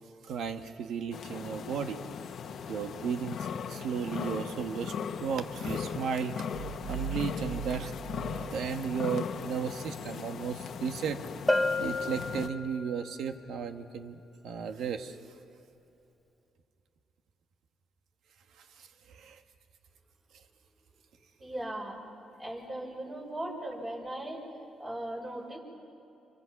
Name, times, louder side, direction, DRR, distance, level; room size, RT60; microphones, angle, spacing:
voice 1, 0.2-2.0 2.7-6.4 6.9-7.9 8.3-11.2 11.8-15.2 18.6-19.4 23.5-23.6, right 6 dB, 75° right, 7 dB, 1.3 m, -35 dB
sound 1, 1.1-12.5, left 7 dB, 65° left, 1.1 m, -38 dB
sound 2, 6.5-9.1, right 8 dB, 50° right, 1.5 m, -40 dB
Bell, 11.5-13.1, left 2 dB, 5° left, 1.1 m, -30 dB
voice 2, 21.4-22.1 22.4-24.4 24.8-25.6, right 1 dB, 25° right, 0 dB, 5.4 m, -38 dB
26.5 x 24.5 x 5.9 m, 2.8 s
cardioid pair, 90°, 0 cm